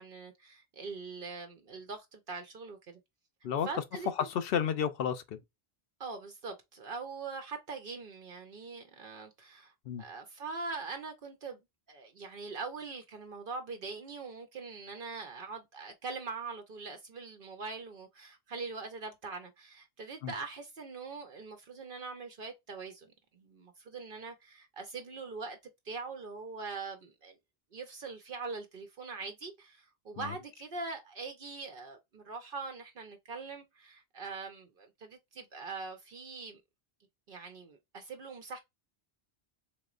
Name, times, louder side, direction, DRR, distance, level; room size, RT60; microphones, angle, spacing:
voice 1, 0.0-3.0 3.6-4.3 6.0-11.6 11.9-25.6 25.8-27.4 27.7-36.6 37.3-38.6, right 4 dB, 60° right, 0.9 m, -42 dB
voice 2, 4.2-5.4 9.9-10.0 20.2-20.3 30.2-30.3, left 8 dB, 70° left, 0.8 m, -32 dB
3.7 x 3.0 x 2.4 m
omnidirectional pair, 1.0 m